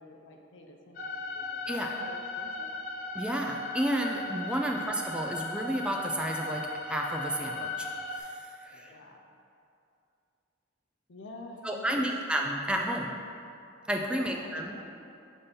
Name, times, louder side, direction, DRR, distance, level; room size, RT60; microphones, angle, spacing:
voice 1, 0.0-2.7 8.7-9.2 11.1-12.1 14.1-14.9, left 2 dB, 75° left, 2 dB, 0.6 m, -48 dB
sound 1, 0.9-8.2, left 2 dB, 45° left, 0.9 m, -37 dB
voice 2, 3.1-9.0 11.6-13.2 13.9-14.7, right 1 dB, 5° right, 1 dB, 0.3 m, -32 dB
7.0 x 2.7 x 5.2 m, 2.6 s
head